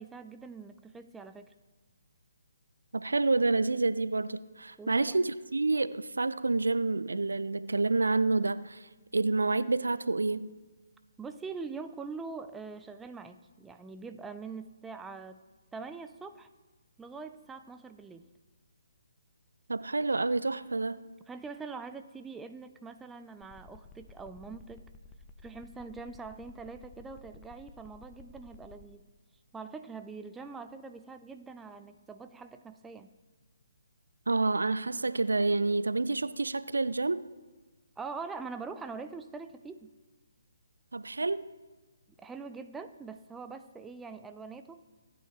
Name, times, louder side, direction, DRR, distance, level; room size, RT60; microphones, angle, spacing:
voice 1, 0.0-1.5 4.8-5.2 11.2-15.4 15.7-16.5 17.0-18.3 21.3-24.9 25.4-29.1 29.5-33.1 38.0-39.9 42.2-44.8, right 4 dB, 5° right, 0.4 m, -43 dB
voice 2, 2.9-8.9 9.1-10.5 19.7-21.0 34.3-37.2 40.9-41.5, right 3 dB, 70° right, 0.4 m, -28 dB
sound 1, 23.4-28.8, left 4 dB, 10° left, 0.8 m, -53 dB
17.5 x 9.4 x 3.2 m
figure-of-eight pair, 140°, 0 cm